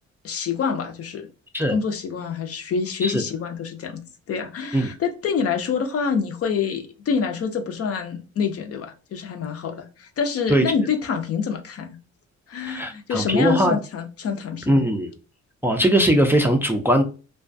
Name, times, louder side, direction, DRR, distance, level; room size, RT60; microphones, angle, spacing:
voice 1, 0.2-1.3 1.7-12.0 12.5-14.9, left 6 dB, 50° left, 0.5 m, -26 dB
voice 2, 12.5-13.8 14.7-15.1 15.6-17.0, right 1 dB, 10° right, 0.4 m, -20 dB
2.3 x 2.3 x 2.5 m
cardioid pair, 90°, 30 cm